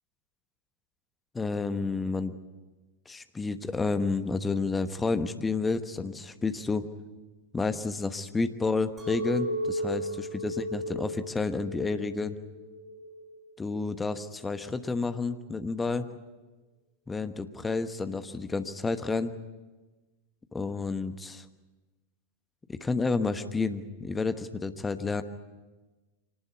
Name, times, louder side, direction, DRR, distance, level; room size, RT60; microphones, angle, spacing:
voice 1, 1.3-2.3 3.1-6.9 7.5-12.4 13.6-16.1 17.1-19.3 20.5-21.4 22.7-25.2, left 4 dB, 10° left, 10 dB, 1.2 m, -30 dB
Chink clink, 9.0-14.2, right 1 dB, 20° right, 6.8 m, -35 dB
25.0 x 19.0 x 8.3 m, 1.2 s
figure-of-eight pair, 90°, 0 cm